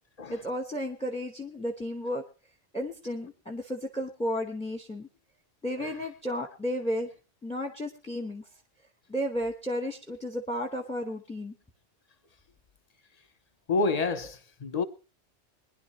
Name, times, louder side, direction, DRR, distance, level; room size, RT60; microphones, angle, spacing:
voice 1, 0.3-2.2 2.7-5.1 5.6-7.1 7.4-8.5 9.1-11.5, equal, 5° left, 1.0 m, -33 dB
voice 2, 13.7-14.8, left 3 dB, 40° left, 0.7 m, -28 dB
22.0 x 10.5 x 3.1 m
omnidirectional pair, 1.2 m